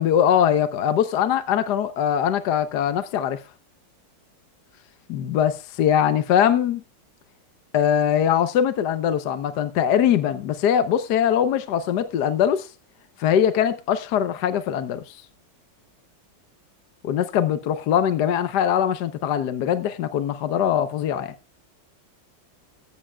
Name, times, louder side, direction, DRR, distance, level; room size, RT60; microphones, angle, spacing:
voice 1, 0.0-3.4 5.1-6.8 7.7-12.7 13.2-15.2 17.0-21.3, left 9 dB, 65° left, 1.3 m, -22 dB
15.5 x 12.5 x 2.3 m
omnidirectional pair, 2.0 m